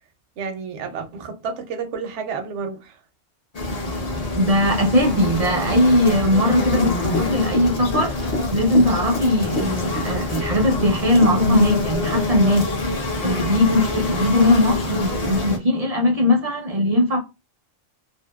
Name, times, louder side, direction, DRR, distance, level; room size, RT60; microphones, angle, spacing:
voice 1, 0.4-3.0, right 5 dB, 70° right, 0.9 m, -30 dB
sound 1, 3.5-15.6, left 2 dB, 45° left, 0.5 m, -25 dB
voice 2, 4.4-8.2 8.5-12.7 13.2-17.2, left 1 dB, 40° right, 0.5 m, -19 dB
Run / Walk footsteps, 6.7-11.8 12.0-12.1, left 2 dB, 60° left, 0.9 m, -30 dB
2.7 x 2.5 x 2.3 m
omnidirectional pair, 1.3 m